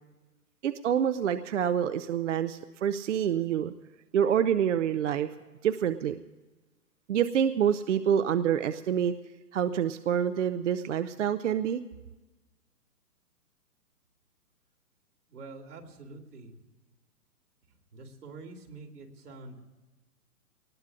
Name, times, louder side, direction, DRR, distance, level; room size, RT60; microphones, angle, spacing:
voice 1, 0.6-3.7 4.1-5.3 5.6-6.2 7.1-9.1 9.5-11.8, right 9 dB, 50° right, 11 dB, 0.5 m, -27 dB
voice 2, 15.3-16.6 17.9-19.6, right 3 dB, 75° right, 2 dB, 2.7 m, -46 dB
22.5 x 19.5 x 2.5 m, 1.1 s
hypercardioid pair, 150°, 47 cm